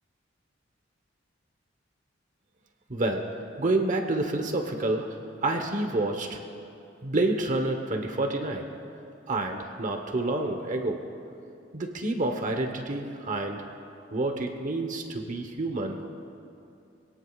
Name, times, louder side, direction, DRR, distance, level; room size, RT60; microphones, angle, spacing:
voice 1, 2.9-6.4 7.0-8.7 9.3-11.1 11.7-13.7 14.1-16.1, right 2 dB, 40° right, 4 dB, 1.1 m, -29 dB
24.5 x 18.0 x 2.4 m, 2.6 s
head